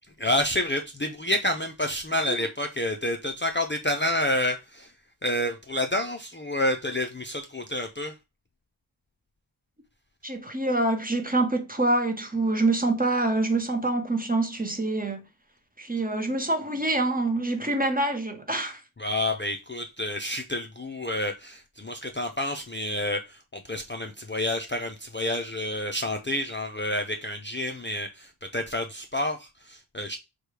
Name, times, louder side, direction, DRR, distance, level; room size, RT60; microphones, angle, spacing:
voice 1, 0.2-4.9 5.2-8.1 19.0-30.2, left 1 dB, 25° left, 0.5 m, -29 dB
voice 2, 10.2-15.3 15.8-18.8, right 2 dB, 20° right, 0.9 m, -26 dB
4.9 x 2.3 x 4.7 m
wide cardioid pair, 60°, 47 cm